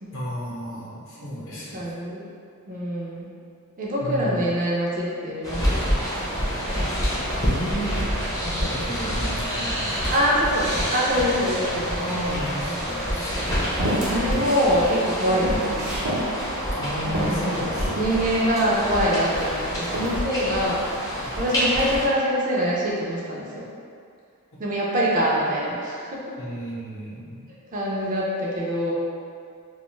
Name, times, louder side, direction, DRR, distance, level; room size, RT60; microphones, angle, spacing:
voice 1, 0.1-1.9 4.0-4.5 7.4-8.0 8.4-10.2 12.0-13.5 16.7-18.1 21.2-21.3 26.4-27.4, equal, 60° left, -7 dB, 0.7 m, -33 dB
voice 2, 1.7-2.3 2.7-3.3 3.8-5.9 10.1-12.1 12.6-12.8 13.1-13.2 14.0-15.9 17.0-17.6 18.0-20.9 21.4-23.7 24.6-26.2 27.7-28.9, equal, 40° right, -5 dB, 0.4 m, -24 dB
sound 1, 5.4-22.1, equal, 15° left, 0.5 m, -27 dB
sound 2, 13.8-14.5 14.9-16.3 16.7-16.8 17.1-18.1 18.8-19.5 19.8-20.2, equal, 80° right, 0.6 m, -28 dB
2.3 x 2.2 x 3.0 m, 2.3 s
head